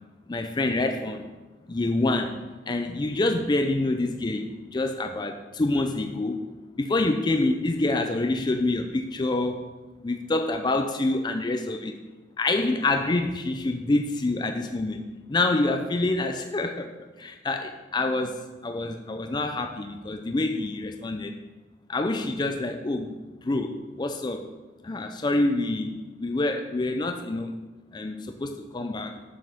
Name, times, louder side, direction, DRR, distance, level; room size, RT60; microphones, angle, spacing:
voice 1, 0.3-1.2 1.7-2.4 2.7-6.4 6.8-9.6 10.0-11.9 12.4-15.0 15.3-16.9 17.2-21.4 21.9-23.1 23.4-24.4 24.8-27.5 27.9-29.1, left 2 dB, 25° left, 6 dB, 0.4 m, -26 dB
7.6 x 5.2 x 5.9 m, 1.2 s
head